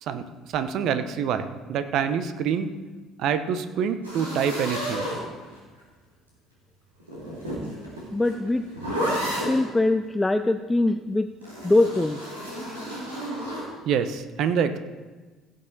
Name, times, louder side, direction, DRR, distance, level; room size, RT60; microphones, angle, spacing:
voice 1, 0.0-2.7 3.2-5.1 13.8-14.8, right 7 dB, 55° right, 10 dB, 0.8 m, -26 dB
sound 1, 4.0-5.8 7.0-9.7 11.4-13.7, equal, 85° right, 2.9 m, -31 dB
voice 2, 8.1-8.6 9.3-11.3 11.6-12.3 12.7-12.8, left 2 dB, 15° left, 8 dB, 0.5 m, -23 dB
16.5 x 6.6 x 4.0 m, 1.3 s
figure-of-eight pair, 55°, 0 cm